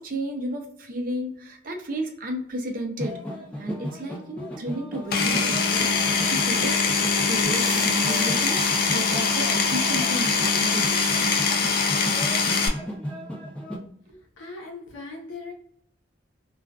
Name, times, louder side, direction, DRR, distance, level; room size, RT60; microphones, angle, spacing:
voice 1, 0.0-3.2 3.6-6.7 7.3-11.1 14.1-14.2, right 1 dB, 45° right, 2 dB, 0.6 m, -33 dB
sound 1, 3.0-13.8, equal, 5° left, 0.6 m, -35 dB
Power tool, 5.1-12.7, left 5 dB, 50° left, 0.4 m, -23 dB
sound 2, 7.4-12.7, right 1 dB, 20° right, 0.9 m, -36 dB
voice 2, 14.4-15.5, left 3 dB, 80° left, 0 dB, 0.8 m, -39 dB
2.4 x 2.4 x 2.2 m, 0.66 s
head